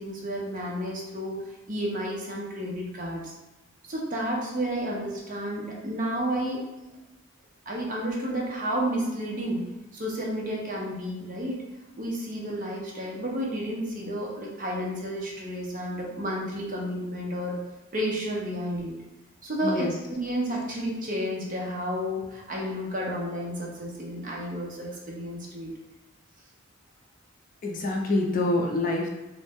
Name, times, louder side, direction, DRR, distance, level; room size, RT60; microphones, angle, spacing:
voice 1, 0.0-3.3 3.9-6.7 7.7-9.7 9.9-11.6 12.0-17.6 17.9-19.0 19.4-25.7, equal, 40° right, -2 dB, 0.6 m, -31 dB
voice 2, 19.6-19.9 27.6-29.1, left 2 dB, 40° left, 0 dB, 0.4 m, -26 dB
2.6 x 2.1 x 3.4 m, 1.0 s
head